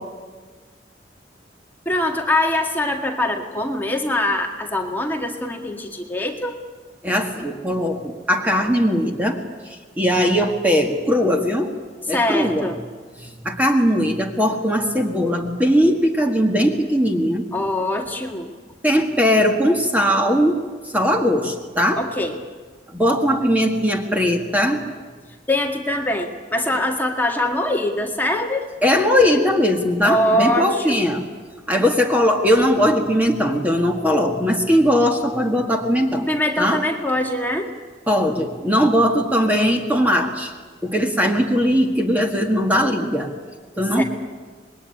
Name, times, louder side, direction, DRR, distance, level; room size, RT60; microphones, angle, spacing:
voice 1, 1.9-6.6 12.1-12.8 17.5-18.5 22.0-22.4 25.5-28.7 30.0-31.0 36.3-37.7 44.0-44.1, left 1 dB, 10° left, 2 dB, 1.8 m, -23 dB
voice 2, 7.0-9.4 9.7-11.7 12.0-12.7 13.2-17.5 18.8-20.6 20.9-22.0 22.9-24.8 28.8-31.2 31.7-36.3 36.6-36.8 38.1-40.5 40.8-43.3 43.8-44.0, equal, 10° right, 3 dB, 1.8 m, -19 dB
26.5 x 20.5 x 9.9 m, 1.5 s
head